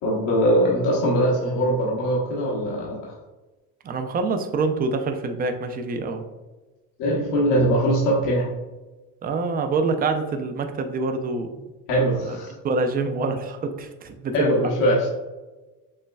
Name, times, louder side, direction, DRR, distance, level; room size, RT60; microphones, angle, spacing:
voice 1, 0.0-3.1 7.0-8.5 11.9-12.5 14.3-15.1, equal, 85° left, -4 dB, 1.0 m, -21 dB
voice 2, 3.8-6.2 9.2-11.6 12.2-12.4 12.6-14.5, right 3 dB, 25° right, 7 dB, 0.4 m, -26 dB
6.5 x 2.2 x 2.2 m, 1.2 s
supercardioid pair, 110°, 39 cm